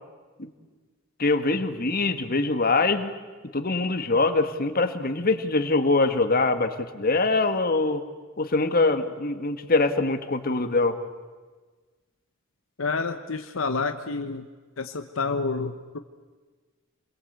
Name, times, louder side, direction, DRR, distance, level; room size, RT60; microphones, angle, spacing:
voice 1, 1.2-3.1 3.5-8.0 8.4-11.0, left 3 dB, 45° left, 8 dB, 1.7 m, -23 dB
voice 2, 12.8-14.4 14.8-16.0, left 4 dB, 70° left, 7 dB, 1.0 m, -29 dB
28.0 x 22.0 x 8.1 m, 1.4 s
head